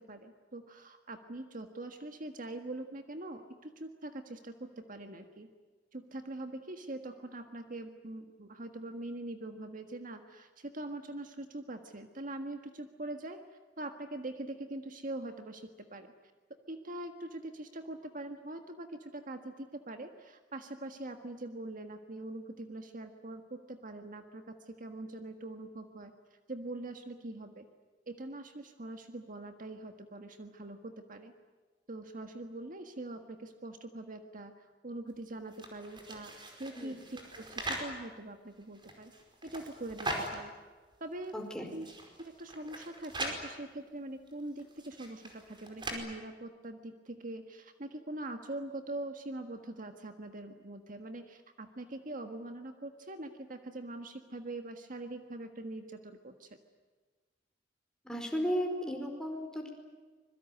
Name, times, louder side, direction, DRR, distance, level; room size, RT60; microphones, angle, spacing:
voice 1, 0.0-5.5 5.9-13.4 13.8-16.1 16.7-27.7 28.1-31.3 31.9-36.3 36.6-39.1 39.4-40.5 41.0-41.3 41.7-41.9 42.2-56.5, right 2 dB, 50° right, 6 dB, 1.6 m, -43 dB
sound 1, 35.5-37.9 38.6-40.4 40.9-41.0 41.2-41.3 41.7-43.4 44.3-45.9, right 1 dB, 25° right, 5.0 m, -41 dB
voice 2, 41.3-41.7 58.0-59.7, equal, 5° left, 3 dB, 4.8 m, -34 dB
25.5 x 22.5 x 9.5 m, 1.4 s
head